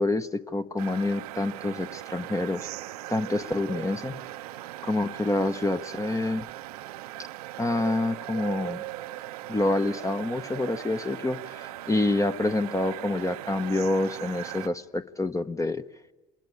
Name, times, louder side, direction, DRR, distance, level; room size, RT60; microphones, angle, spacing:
voice 1, 0.0-2.7 3.1-4.2 4.8-6.5 7.6-8.8 9.5-15.8, left 2 dB, 15° left, 10 dB, 0.9 m, -27 dB
sound 1, 0.8-14.7, right 15 dB, 80° right, 0.8 m, -39 dB
26.0 x 20.5 x 9.9 m, 1.2 s
hypercardioid pair, 60°, 19 cm